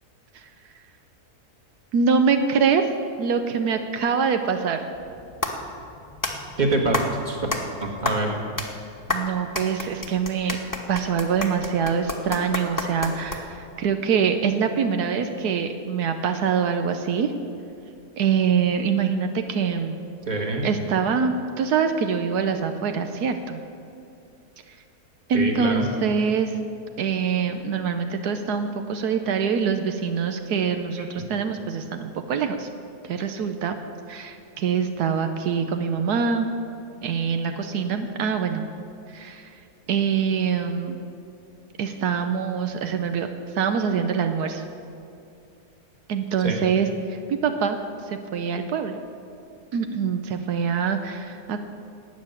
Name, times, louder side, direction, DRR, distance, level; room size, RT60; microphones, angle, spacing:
voice 1, 1.9-2.9 3.2-4.8 9.1-10.6 10.9-17.3 18.2-20.0 20.6-23.6 25.3-26.5 27.0-32.7 33.0-33.8 34.1-36.5 37.0-38.6 39.1-39.5 39.9-41.0 41.8-43.3 43.5-44.6 46.1-47.8 48.1-49.0 49.7-51.6, right 6 dB, 80° right, 7 dB, 1.3 m, -24 dB
sound 1, 4.9-13.7, left 2 dB, 15° left, 1.1 m, -31 dB
voice 2, 6.6-7.5 7.8-8.3 20.3-20.7 25.3-25.8 46.4-46.6, right 2 dB, 30° right, 1 dB, 1.8 m, -25 dB
13.0 x 8.5 x 9.6 m, 2.5 s
omnidirectional pair, 1.7 m